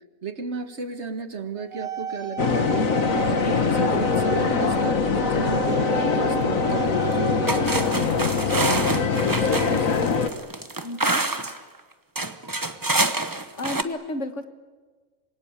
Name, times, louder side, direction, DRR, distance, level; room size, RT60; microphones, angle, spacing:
voice 1, 0.2-10.1, right 5 dB, 55° right, 9 dB, 1.9 m, -35 dB
flute sol, 1.6-7.8, right 9 dB, 90° right, 4.2 m, -32 dB
sound 1, 2.4-10.3, left 5 dB, 75° left, 1.8 m, -23 dB
sound 2, 7.0-7.1 7.5-11.6 12.2-13.8, right 2 dB, 15° right, 1.0 m, -26 dB
voice 2, 10.8-11.3 13.6-14.4, left 1 dB, 60° left, 9 dB, 1.8 m, -32 dB
27.0 x 23.0 x 8.9 m, 1.4 s
omnidirectional pair, 1.4 m